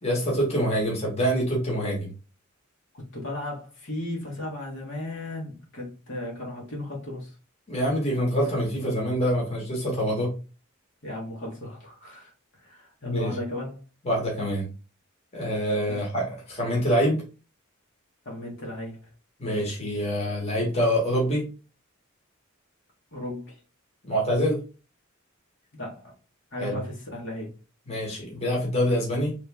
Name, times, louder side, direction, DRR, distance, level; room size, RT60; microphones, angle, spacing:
voice 1, 0.0-2.1 7.7-10.3 13.0-13.4 14.0-14.7 15.3-17.2 19.4-21.5 24.0-24.6 26.6-26.7 27.9-29.4, equal, 30° left, 1.5 m, -25 dB
voice 2, 2.9-7.3 11.0-13.8 15.9-16.0 18.2-19.1 23.1-23.6 25.7-26.1 26.5-27.5, left 1 dB, 60° left, 1.6 m, -36 dB
3.6 x 3.3 x 3.4 m
head